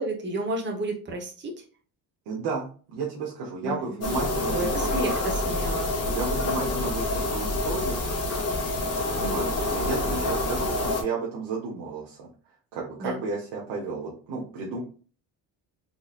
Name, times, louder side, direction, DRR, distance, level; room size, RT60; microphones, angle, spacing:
voice 1, 0.0-1.5 3.6-5.9 13.0-13.2, right 1 dB, 25° right, 1 dB, 1.0 m, -32 dB
voice 2, 2.3-5.1 6.1-8.0 9.1-12.3 12.7-14.8, right 4 dB, 90° right, -4 dB, 1.0 m, -32 dB
sound 1, 4.0-11.0, left 2 dB, 35° left, 1.2 m, -27 dB
3.7 x 3.0 x 2.4 m, 0.39 s
cardioid pair, 95°, 41 cm